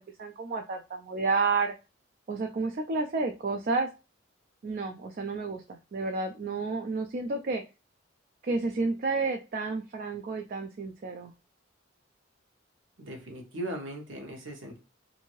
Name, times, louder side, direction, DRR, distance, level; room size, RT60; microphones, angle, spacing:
voice 1, 0.0-1.7 2.3-3.9 4.6-7.6 8.4-11.3, right 3 dB, 45° right, 5 dB, 0.3 m, -31 dB
voice 2, 13.0-14.8, right 1 dB, 85° right, 1 dB, 1.0 m, -38 dB
2.7 x 2.6 x 3.0 m, 0.29 s
head